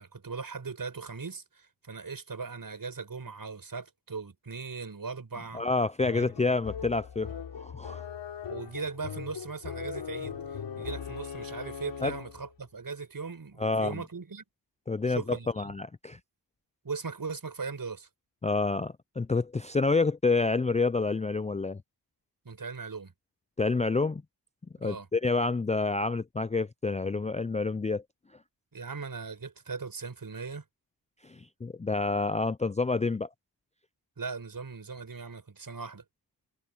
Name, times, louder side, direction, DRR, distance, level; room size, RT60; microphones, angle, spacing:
voice 1, 0.0-5.6 6.1-6.6 8.5-14.4 15.1-15.7 16.8-18.1 22.4-23.1 24.8-25.1 28.7-30.6 34.2-36.0, right 4 dB, 50° right, 6.4 m, -39 dB
voice 2, 5.5-8.0 12.0-12.1 13.6-14.0 14.9-15.2 15.6-16.2 18.4-21.8 23.6-24.2 24.8-28.0 31.2-33.3, left 3 dB, 15° left, 0.4 m, -28 dB
sound 1, 6.0-12.5, left 7 dB, 85° left, 3.2 m, -40 dB
cardioid pair, 55°, 43 cm